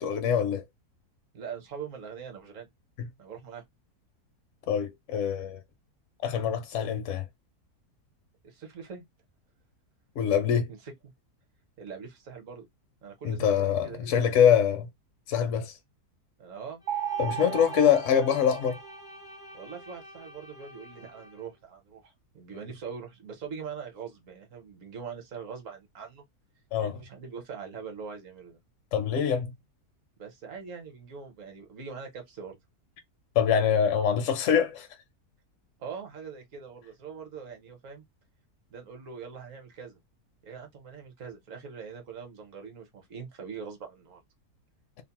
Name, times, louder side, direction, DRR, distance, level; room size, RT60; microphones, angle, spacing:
voice 1, 0.0-0.6 4.7-5.6 6.2-7.3 10.2-10.7 13.2-14.9 15.3-15.7 17.2-18.8 26.7-26.9 28.9-29.5 33.4-34.9, left 8 dB, 65° left, 0.8 m, -24 dB
voice 2, 1.3-2.7 3.2-3.6 8.4-9.0 10.7-11.1 11.8-12.7 13.0-14.1 16.4-16.8 17.3-17.6 19.5-26.2 26.8-28.6 30.2-32.6 35.8-38.0 38.7-40.0 40.4-44.2, right 6 dB, 60° right, 1.1 m, -42 dB
Bowed string instrument, 16.8-21.5, equal, 5° right, 0.3 m, -48 dB
sound 1, 16.9-19.3, right 9 dB, 80° right, 1.1 m, -35 dB
2.8 x 2.0 x 2.8 m
omnidirectional pair, 1.7 m